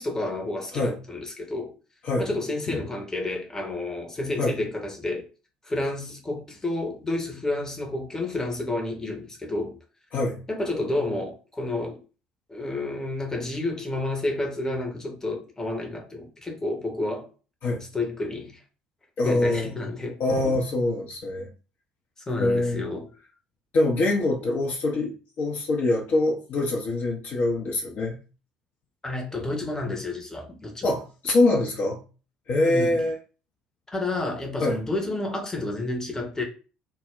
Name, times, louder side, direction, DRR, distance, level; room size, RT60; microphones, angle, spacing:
voice 1, 0.0-1.7 2.2-5.3 5.6-9.8 10.5-12.0 12.5-17.3 17.9-18.6 19.2-20.2 22.3-23.1 29.0-30.9 32.6-33.0 33.9-36.4, left 2 dB, 15° left, 0.7 m, -30 dB
voice 2, 19.2-19.7 20.2-21.5 22.4-22.8 23.7-28.2 30.8-32.0 32.5-33.2 34.6-34.8, left 2 dB, 50° left, 0.5 m, -24 dB
2.1 x 2.0 x 3.6 m
figure-of-eight pair, 55°, 4 cm